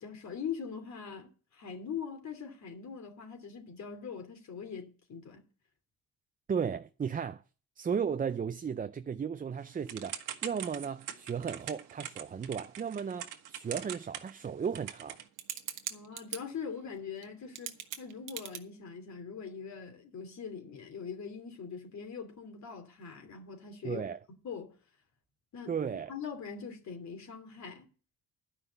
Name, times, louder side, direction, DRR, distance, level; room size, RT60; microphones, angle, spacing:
voice 1, 0.0-5.4 15.9-24.0 24.4-24.7 25.5-25.7 26.1-27.9, left 6 dB, 60° left, 3.0 m, -42 dB
voice 2, 6.5-7.4 7.8-15.2 23.8-24.2 25.7-26.1, right 7 dB, 25° right, 0.5 m, -35 dB
Typing / Telephone, 9.9-16.4 17.2-17.3 17.5-18.6, right 10 dB, 80° right, 1.3 m, -41 dB
11.5 x 5.7 x 8.0 m
cardioid pair, 90°, 31 cm